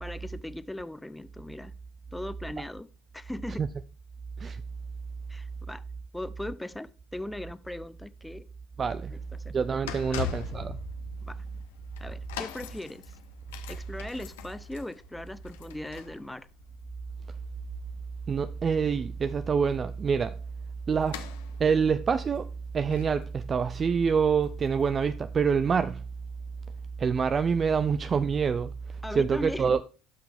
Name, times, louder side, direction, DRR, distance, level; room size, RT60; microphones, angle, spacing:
voice 1, 0.0-1.7 2.1-2.9 3.1-3.7 5.3-5.8 6.1-8.5 9.1-9.6 10.1-10.3 11.2-11.4 12.0-13.1 13.7-16.5 29.0-29.8, left 1 dB, 5° left, 0.6 m, -39 dB
sound 1, 8.8-25.8 26.4-26.5, left 9 dB, 85° left, 1.1 m, -44 dB
voice 2, 8.8-9.1 9.5-10.8 18.3-20.4 20.9-21.2 21.6-22.5 22.7-26.0 27.0-28.7 29.2-29.8, right 6 dB, 35° right, 0.4 m, -26 dB
12.0 x 6.0 x 3.5 m
hypercardioid pair, 75°, 0 cm